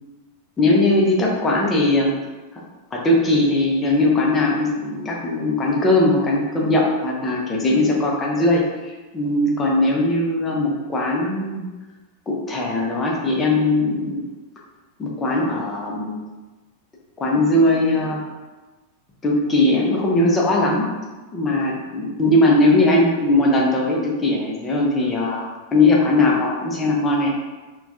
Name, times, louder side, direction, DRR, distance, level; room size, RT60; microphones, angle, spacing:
voice 1, 0.6-2.2 2.9-11.6 12.3-14.2 15.0-16.2 17.2-18.2 19.2-20.8 21.3-27.3, left 2 dB, 20° left, -3 dB, 0.8 m, -19 dB
4.3 x 2.4 x 2.7 m, 1.2 s
figure-of-eight pair, 90°, 0 cm